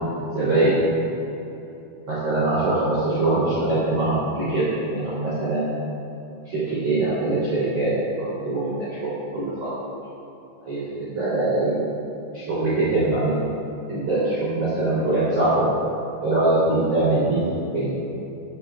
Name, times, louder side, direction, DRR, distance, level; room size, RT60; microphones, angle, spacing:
voice 1, 0.3-0.8 2.1-4.6 4.9-5.7 6.5-7.9 8.2-9.0 9.3-9.7 10.6-11.7 12.3-13.4 13.9-15.7 16.2-17.4 17.7-17.9, right 2 dB, 40° right, -11 dB, 4.1 m, -22 dB
17.0 x 15.0 x 2.4 m, 2.9 s
omnidirectional pair, 4.9 m